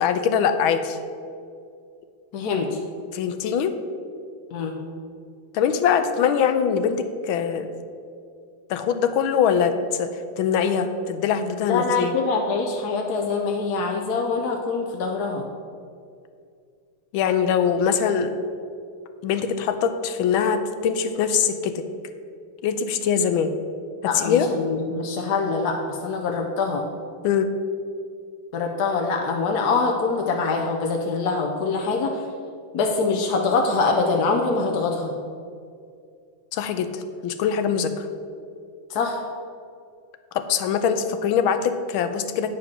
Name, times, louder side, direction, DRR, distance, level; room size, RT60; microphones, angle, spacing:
voice 1, 0.0-1.0 3.1-3.8 5.5-7.7 8.7-10.1 10.4-12.1 17.1-18.3 19.2-21.8 22.6-23.5 24.0-24.5 27.2-27.5 36.5-38.1 40.3-42.5, left 7 dB, 90° left, 9 dB, 1.4 m, -22 dB
voice 2, 2.3-2.8 4.5-4.8 11.7-15.4 24.1-26.8 28.5-32.2 32.7-35.1 38.9-39.2, left 4 dB, 65° left, 1 dB, 1.1 m, -24 dB
9.6 x 5.0 x 6.0 m, 2.3 s
omnidirectional pair, 2.2 m